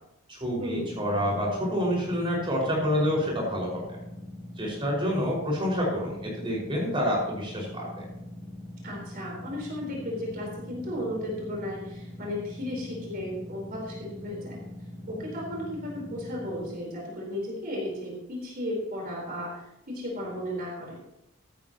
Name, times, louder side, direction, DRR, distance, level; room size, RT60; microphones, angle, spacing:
voice 1, 0.3-3.8 4.6-8.0, equal, 25° right, -2 dB, 5.3 m, -28 dB
sound 1, 0.7-16.7, left 1 dB, 5° left, 2.3 m, -42 dB
voice 2, 8.8-14.6 15.1-21.0, left 1 dB, 45° right, -2 dB, 4.0 m, -34 dB
15.5 x 12.5 x 3.0 m, 0.84 s
head